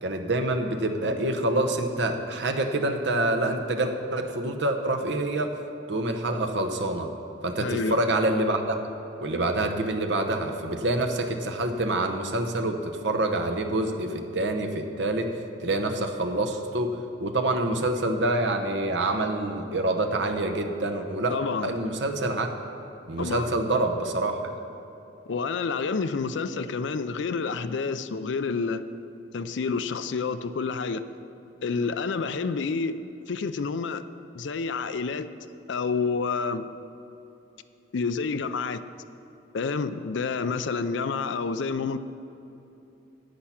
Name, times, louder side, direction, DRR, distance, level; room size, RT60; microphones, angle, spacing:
voice 1, 0.0-5.5 5.9-7.1 7.4-8.8 9.2-15.3 15.6-21.3 21.6-22.5 23.1-24.4, right 2 dB, 70° right, 5 dB, 0.9 m, -26 dB
voice 2, 7.6-8.0 21.3-21.7 23.2-23.5 25.3-28.8 29.3-31.0 31.6-33.0 33.3-34.0 34.3-35.3 35.7-36.7 37.9-38.8 39.5-42.0, left 4 dB, 75° left, 11 dB, 0.4 m, -29 dB
10.0 x 8.5 x 5.8 m, 2.9 s
head